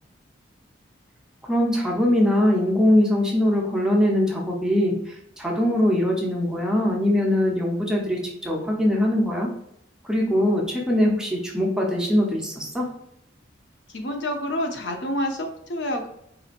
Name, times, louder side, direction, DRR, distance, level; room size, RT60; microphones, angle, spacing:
voice 1, 1.4-9.5 10.0-12.9, left 1 dB, 5° right, -2 dB, 0.6 m, -22 dB
voice 2, 13.9-16.1, left 1 dB, 70° left, 3 dB, 0.6 m, -28 dB
4.1 x 2.8 x 2.5 m, 0.75 s
head